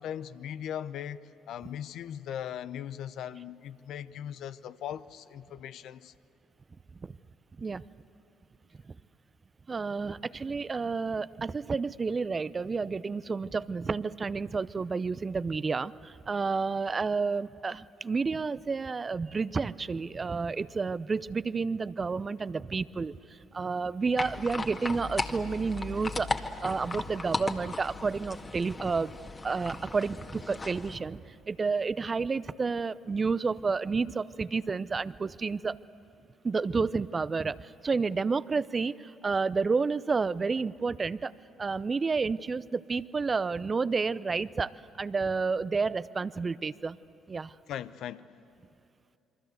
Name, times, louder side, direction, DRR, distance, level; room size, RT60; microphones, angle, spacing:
voice 1, 0.0-6.1 47.7-48.3, left 10 dB, 65° left, 0.7 m, -39 dB
voice 2, 9.7-23.2 23.5-29.2 29.4-35.8 36.4-41.3 41.6-47.0 47.3-47.5, right 4 dB, 35° right, 0.7 m, -30 dB
sound 1, 24.2-31.0, left 3 dB, 30° left, 1.8 m, -36 dB
27.5 x 24.0 x 8.0 m
hypercardioid pair, 50°, 0 cm